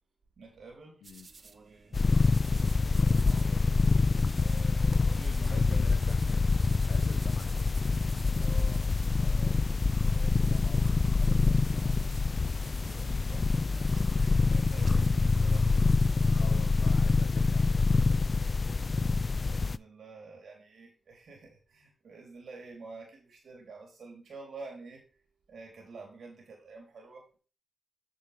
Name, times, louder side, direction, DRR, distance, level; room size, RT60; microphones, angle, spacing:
voice 1, 0.4-1.0 1.4-3.6 4.4-5.9 8.4-8.9 9.2-9.6 10.1-12.0 12.8-15.7 19.4-25.2 25.5-27.4, right 4 dB, 75° right, 0 dB, 3.9 m, -49 dB
sound 1, 1.0-16.3, right 4 dB, 55° right, 1.1 m, -54 dB
sound 2, 1.9-19.8, left 3 dB, 50° left, 0.4 m, -26 dB
voice 2, 5.4-7.8 16.3-18.4, left 7 dB, 90° left, 9 dB, 1.1 m, -49 dB
10.0 x 6.4 x 3.6 m, 0.35 s
supercardioid pair, 40°, 0 cm